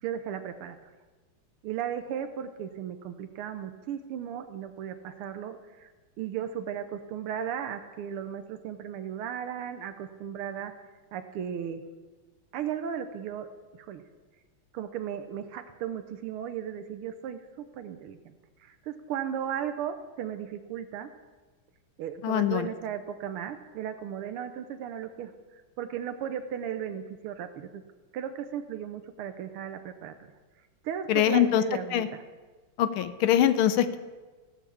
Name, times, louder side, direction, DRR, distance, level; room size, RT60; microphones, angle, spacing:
voice 1, 0.0-0.8 1.6-5.9 6.2-10.7 11.1-11.8 12.5-13.5 13.7-14.0 14.7-18.3 18.6-21.1 22.0-27.8 28.1-30.1 30.8-32.2, right 9 dB, 90° right, 8 dB, 1.6 m, -36 dB
voice 2, 22.2-22.7 31.1-31.6 31.9-32.1 32.8-34.0, left 11 dB, 80° left, 13 dB, 1.5 m, -23 dB
15.5 x 5.7 x 8.4 m, 1.3 s
omnidirectional pair, 2.4 m